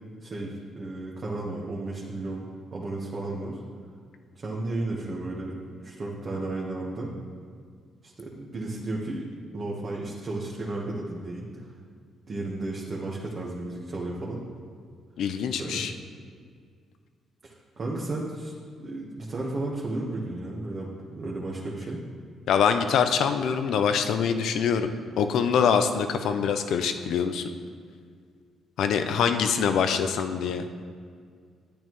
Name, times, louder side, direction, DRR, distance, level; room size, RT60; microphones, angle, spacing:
voice 1, 0.2-3.6 4.3-7.1 8.0-9.2 9.5-11.7 12.3-14.4 15.6-15.9 17.4-18.5 18.8-22.0, right 2 dB, 40° right, -5 dB, 1.3 m, -33 dB
voice 2, 15.2-15.9 22.5-27.5 28.8-30.7, left 7 dB, 75° left, 8 dB, 0.6 m, -24 dB
10.5 x 8.9 x 3.1 m, 2.1 s
cardioid pair, 90°, 0 cm